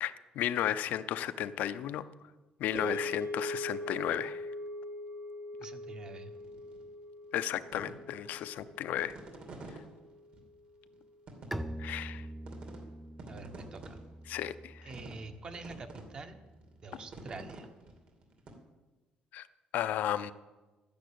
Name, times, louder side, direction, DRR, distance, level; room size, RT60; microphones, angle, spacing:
voice 1, 0.0-2.0 2.6-4.4 7.3-9.1 11.8-12.3 14.3-14.8 19.3-19.5 19.7-20.3, left 11 dB, 75° left, 13 dB, 0.7 m, -34 dB
sound 1, 2.7-11.0, left 1 dB, 75° right, 3.1 m, -42 dB
voice 2, 5.6-6.3 13.3-14.0 14.8-16.4 16.8-17.7, right 3 dB, 30° right, 7 dB, 1.2 m, -46 dB
sound 2, 6.3-6.8 7.2-9.8 10.3-10.4 10.9-11.0 11.3-12.2 12.5-12.8 13.1-14.4 14.9-15.3 15.5-16.0 16.5-18.5, right 3 dB, 50° right, 2.5 m, -48 dB
Bowed string instrument, 11.5-17.1, right 1 dB, ahead, 0.5 m, -45 dB
12.0 x 10.5 x 8.6 m, 1.2 s
cardioid pair, 155°, 3 cm